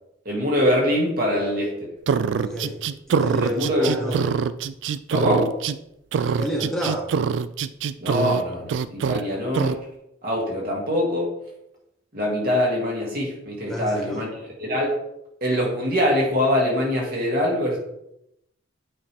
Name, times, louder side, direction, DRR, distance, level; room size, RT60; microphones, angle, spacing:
voice 1, 0.3-1.9 3.4-4.3 5.1-5.6 8.0-9.8 10.2-11.4 12.1-15.0 15.4-17.8, equal, 50° right, -3 dB, 2.2 m, -23 dB
sound 1, 2.1-5.8 6.1-8.4 8.7-9.2 9.5-9.8, right 6 dB, 65° right, 0.3 m, -24 dB
voice 2, 2.3-2.8 3.1-4.1 6.3-7.1 13.7-14.2, equal, ahead, -3 dB, 1.1 m, -30 dB
8.5 x 5.1 x 3.4 m, 0.82 s
head